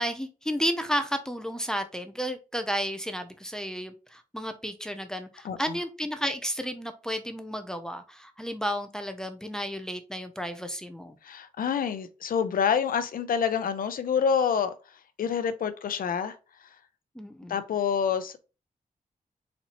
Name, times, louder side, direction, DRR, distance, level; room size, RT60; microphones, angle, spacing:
voice 1, 0.0-11.2 17.2-17.6, equal, 5° left, 0.5 m, -32 dB
voice 2, 11.2-14.7 15.2-16.4 17.5-18.4, left 7 dB, 85° left, 0.6 m, -27 dB
4.2 x 4.2 x 2.9 m
wide cardioid pair, 155°, 14 cm